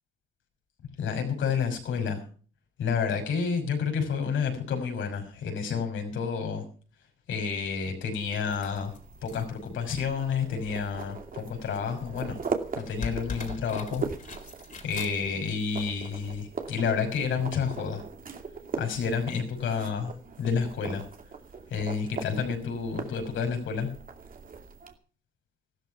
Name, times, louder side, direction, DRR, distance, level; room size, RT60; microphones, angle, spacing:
voice 1, 1.0-2.2 2.8-6.6 7.3-8.9 9.2-12.4 12.8-14.0 14.8-18.0 18.8-20.1 20.4-21.0 21.7-23.9, left 6 dB, 75° left, 5 dB, 6.0 m, -30 dB
sound 1, 8.2-24.9, right 5 dB, 45° right, 2.6 m, -40 dB
sound 2, 8.4-16.1 17.0-17.1, left 5 dB, 40° left, 4.1 m, -43 dB
15.5 x 13.0 x 5.9 m, 0.41 s
cardioid pair, 90°, 20 cm